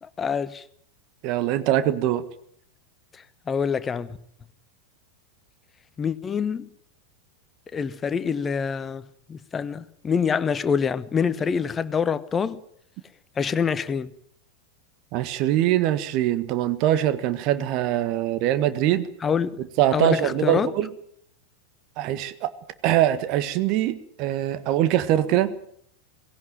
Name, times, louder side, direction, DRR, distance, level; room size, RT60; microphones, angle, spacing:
voice 1, 0.2-0.6 3.5-4.2 6.0-6.7 7.7-12.6 13.4-14.1 19.2-19.6 19.9-20.7, left 6 dB, 20° left, 1.1 m, -25 dB
voice 2, 1.2-2.2 15.1-19.1 19.8-20.9 22.0-22.5 22.8-25.5, right 12 dB, 40° right, 1.6 m, -23 dB
19.0 x 17.0 x 9.1 m
figure-of-eight pair, 90°, 0 cm